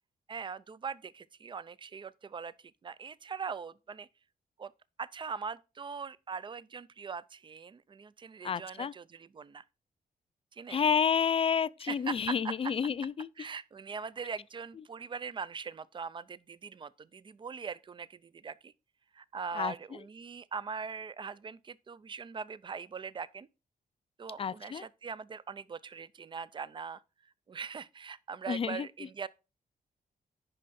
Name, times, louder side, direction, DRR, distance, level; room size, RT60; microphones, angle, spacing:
voice 1, 0.3-4.1 4.6-4.7 5.0-9.6 10.5-10.8 11.8-12.7 13.4-18.7 19.1-23.5 24.2-27.0 27.5-29.3, right 6 dB, 35° right, 0.5 m, -41 dB
voice 2, 8.4-8.9 10.7-13.3 19.6-19.7 24.4-24.9 28.5-28.9, left 7 dB, 40° left, 0.4 m, -30 dB
9.9 x 5.4 x 4.2 m
wide cardioid pair, 130°, 15 cm